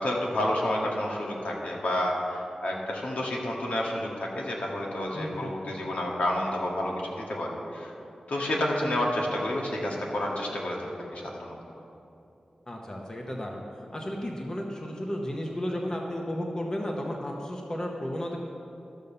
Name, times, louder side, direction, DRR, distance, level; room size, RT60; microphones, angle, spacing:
voice 1, 0.0-7.0 7.3-7.9 8.3-11.6, left 1 dB, 80° left, -2 dB, 1.8 m, -30 dB
voice 2, 5.1-5.5 12.7-13.6 13.9-18.4, equal, 30° left, 0 dB, 1.0 m, -33 dB
13.0 x 5.4 x 6.9 m, 2.8 s
wide cardioid pair, 90°, 2 cm